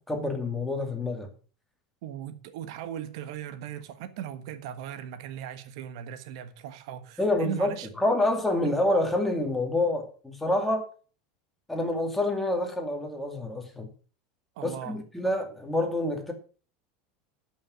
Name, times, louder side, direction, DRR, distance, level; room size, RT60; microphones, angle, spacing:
voice 1, 0.1-1.3 7.2-10.9 11.7-13.9 14.6-16.3, left 1 dB, 5° left, 2.3 m, -27 dB
voice 2, 2.0-7.9 14.6-15.0, right 10 dB, 70° right, 1.4 m, -38 dB
12.5 x 6.4 x 6.1 m
supercardioid pair, 150°, 3 cm